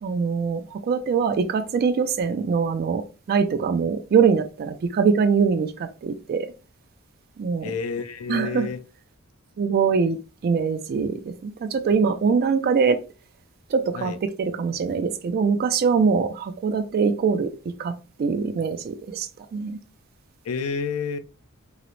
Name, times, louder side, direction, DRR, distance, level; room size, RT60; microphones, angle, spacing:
voice 1, 0.0-6.5 7.4-7.7 8.3-8.7 9.6-10.2 10.4-13.0 13.7-17.5 17.8-19.8, right 5 dB, 45° right, 0.3 m, -23 dB
voice 2, 7.6-8.8 13.9-14.2 20.4-21.2, left 5 dB, 70° left, 0.5 m, -29 dB
3.8 x 2.0 x 2.9 m
head